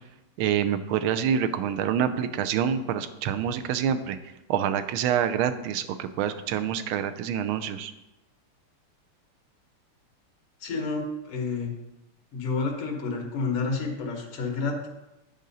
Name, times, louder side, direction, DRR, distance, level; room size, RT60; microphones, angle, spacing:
voice 1, 0.4-4.2 4.5-7.9, right 8 dB, 75° right, 11 dB, 1.3 m, -26 dB
voice 2, 10.6-11.7 12.3-14.9, left 4 dB, 85° left, 2 dB, 2.2 m, -29 dB
10.5 x 5.1 x 4.0 m, 0.97 s
omnidirectional pair, 2.4 m